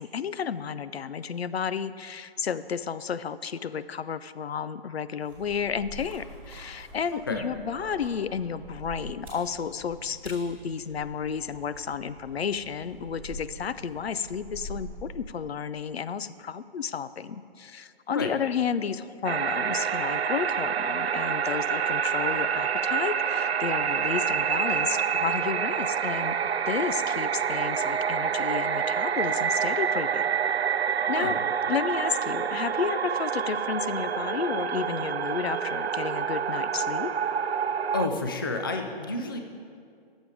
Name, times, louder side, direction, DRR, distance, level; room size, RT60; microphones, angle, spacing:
voice 1, 0.0-26.4 26.7-30.3 31.1-31.4 31.7-37.1, left 7 dB, 75° left, 15 dB, 0.5 m, -32 dB
sound 1, 5.2-15.6, right 1 dB, 5° right, 2.7 m, -45 dB
voice 2, 7.1-7.5 18.1-18.3 31.2-31.3 37.9-39.4, left 3 dB, 25° left, 5 dB, 0.4 m, -30 dB
sound 2, 19.3-38.1, right 7 dB, 85° right, 0.5 m, -27 dB
11.5 x 7.3 x 5.0 m, 2.3 s
figure-of-eight pair, 145°, 31 cm